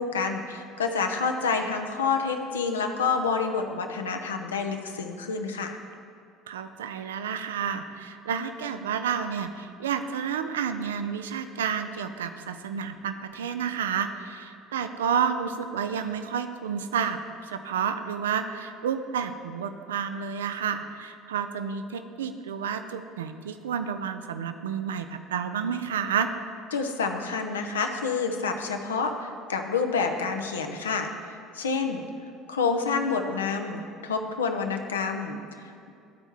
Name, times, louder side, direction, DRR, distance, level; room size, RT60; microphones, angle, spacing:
voice 1, 0.0-5.8 26.7-32.0 32.5-35.9, left 5 dB, 75° left, 5 dB, 0.5 m, -28 dB
voice 2, 6.5-26.3, right 7 dB, 70° right, 9 dB, 0.3 m, -30 dB
12.5 x 4.4 x 4.4 m, 2.4 s
figure-of-eight pair, 60°, 0 cm